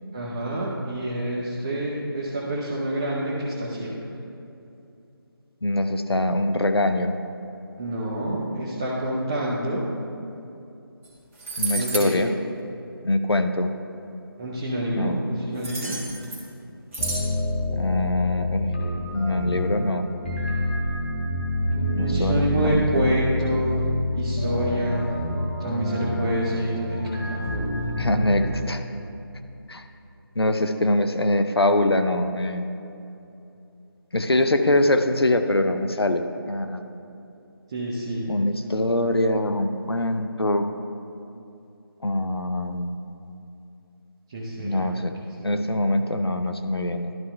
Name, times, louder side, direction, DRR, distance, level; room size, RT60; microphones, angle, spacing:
voice 1, 0.1-4.1 7.8-9.9 11.7-12.2 14.4-16.0 22.0-23.8 24.1-25.1 25.6-27.8 37.7-38.3 44.3-44.9 45.4-45.6, right 1 dB, 15° right, -6 dB, 0.4 m, -27 dB
voice 2, 5.6-7.1 11.6-12.3 13.0-13.7 14.9-15.2 17.7-18.7 19.1-20.1 21.9-23.1 28.0-28.8 29.7-29.8 30.4-32.7 34.1-36.8 38.3-40.7 42.0-43.0 44.6-45.2 45.4-47.1, left 1 dB, 90° left, 7 dB, 0.6 m, -23 dB
sound 1, 11.0-11.1 11.4-12.1 15.6-16.5 16.9-17.3, right 3 dB, 35° right, 1.7 m, -30 dB
sound 2, 17.0-28.5, left 1 dB, 25° left, 1.3 m, -27 dB
12.5 x 5.5 x 3.2 m, 2.7 s
figure-of-eight pair, 160°, 13 cm